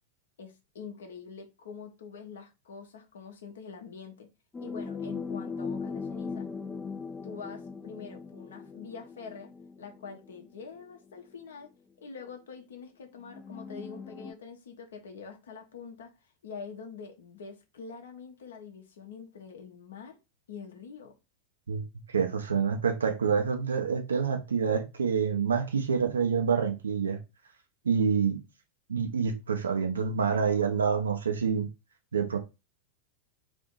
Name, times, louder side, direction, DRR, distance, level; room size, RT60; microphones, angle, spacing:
voice 1, 0.4-4.3 4.6-6.5 7.2-9.5 9.8-11.7 12.0-16.1 16.4-20.2 20.5-21.1, left 5 dB, 65° left, 0.8 m, -45 dB
sound 1, 4.5-10.4 11.4-11.5 13.2-14.3, left 5 dB, 15° left, 0.3 m, -39 dB
voice 2, 22.1-27.2 27.8-28.4 28.9-31.7 32.1-32.4, right 6 dB, 70° right, 0.6 m, -27 dB
2.6 x 2.6 x 3.7 m
figure-of-eight pair, 90°, 0 cm